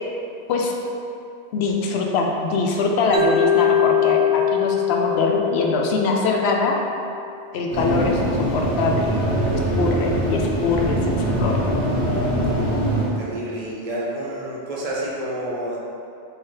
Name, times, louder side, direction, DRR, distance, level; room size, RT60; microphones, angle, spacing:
voice 1, 1.5-6.8 7.5-9.2 9.8-11.6, left 3 dB, 65° left, 1 dB, 0.8 m, -22 dB
Mallet percussion, 3.1-7.2, left 9 dB, 85° right, 1.0 m, -22 dB
sound 1, 7.7-13.1, right 1 dB, 15° right, 1.4 m, -22 dB
voice 2, 13.2-15.8, right 1 dB, 35° right, -5 dB, 0.7 m, -29 dB
3.3 x 3.0 x 4.5 m, 2.6 s
omnidirectional pair, 1.2 m